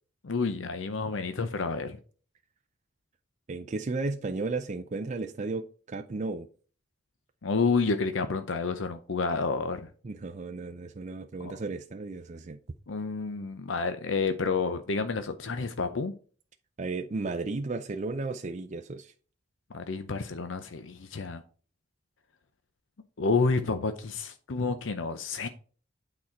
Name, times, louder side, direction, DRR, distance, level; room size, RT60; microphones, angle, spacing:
voice 1, 0.2-2.0 7.4-9.9 11.4-11.5 12.9-16.1 19.7-21.4 23.2-25.5, left 4 dB, 75° left, 0.7 m, -29 dB
voice 2, 3.5-6.5 10.0-12.6 16.8-19.1, right 3 dB, 40° right, 0.5 m, -34 dB
8.8 x 4.2 x 4.3 m
head